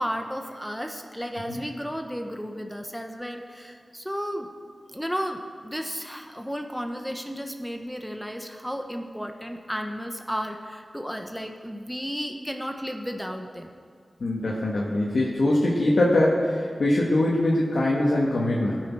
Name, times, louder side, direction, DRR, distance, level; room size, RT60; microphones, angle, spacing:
voice 1, 0.0-4.5 4.9-13.7, equal, ahead, 4 dB, 0.9 m, -33 dB
voice 2, 14.2-18.8, left 1 dB, 75° left, -5 dB, 1.7 m, -22 dB
18.0 x 6.4 x 4.7 m, 2.1 s
wide cardioid pair, 75°, 0 cm